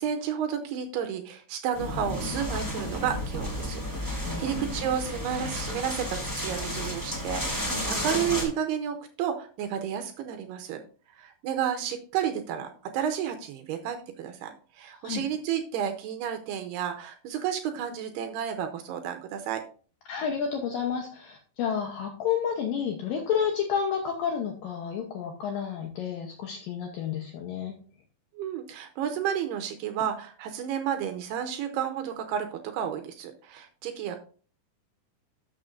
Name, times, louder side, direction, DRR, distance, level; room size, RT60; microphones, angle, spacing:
voice 1, 0.0-10.8 11.2-19.6 28.4-34.2, right 8 dB, 80° right, 6 dB, 2.5 m, -31 dB
sound 1, 1.7-8.4, equal, 10° left, 1.0 m, -32 dB
voice 2, 4.2-4.7 15.0-15.2 20.1-27.8, left 7 dB, 75° left, 2 dB, 2.1 m, -30 dB
12.5 x 6.3 x 2.5 m, 0.40 s
omnidirectional pair, 5.2 m